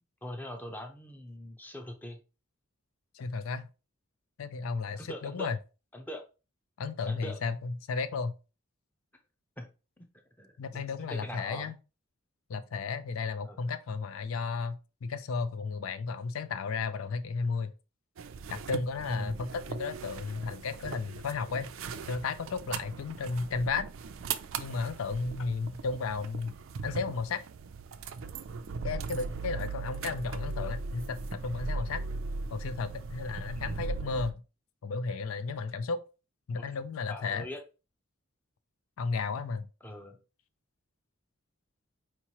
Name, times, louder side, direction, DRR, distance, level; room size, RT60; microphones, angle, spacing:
voice 1, 0.2-2.2 4.9-5.5 5.9-6.2 7.1-7.4 9.6-9.7 10.0-10.1 10.4-11.7 13.4-13.6 19.1-19.4 33.6-33.9 36.5-36.6 37.1-37.6 39.8-40.2, left 1 dB, 10° left, 0.5 m, -41 dB
voice 2, 3.1-3.7 4.4-5.6 6.8-8.3 10.6-11.8 12.5-17.7 18.5-21.7 22.0-23.8 24.6-26.5 26.8-27.4 28.8-32.0 32.5-34.4 34.8-36.0 36.5-37.5 39.0-39.7, left 4 dB, 85° left, 0.4 m, -33 dB
sound 1, 18.2-34.3, right 4 dB, 70° right, 0.4 m, -39 dB
4.6 x 3.0 x 2.9 m
head